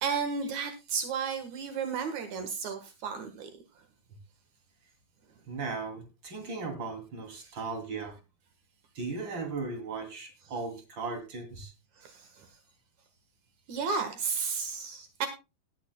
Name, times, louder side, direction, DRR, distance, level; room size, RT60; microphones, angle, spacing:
voice 1, 0.0-3.5 7.4-7.5 12.0-12.5 13.7-15.3, right 5 dB, 85° right, 7 dB, 1.6 m, -33 dB
voice 2, 5.5-8.2 8.9-11.7, right 4 dB, 30° right, 4 dB, 2.7 m, -37 dB
18.5 x 11.0 x 2.2 m, 0.28 s
omnidirectional pair, 5.7 m